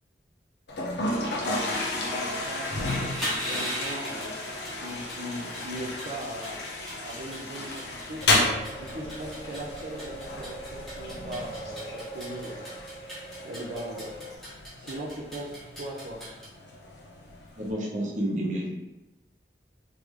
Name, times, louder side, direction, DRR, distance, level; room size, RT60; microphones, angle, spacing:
Toilet flush, 0.7-17.7, left 2 dB, 80° left, 0.8 m, -33 dB
voice 1, 2.4-4.3 4.7-6.6 7.0-8.2 8.8-12.7 13.4-14.1 14.8-16.2, right 1 dB, 60° right, -6 dB, 0.6 m, -39 dB
sound 1, 2.7-16.5, equal, ahead, 1.1 m, -39 dB
sound 2, 8.2-14.4, right 2 dB, 50° left, 0.4 m, -42 dB
voice 2, 17.6-18.7, right 1 dB, 45° right, -4 dB, 1.0 m, -29 dB
3.8 x 3.3 x 3.1 m, 1.1 s
head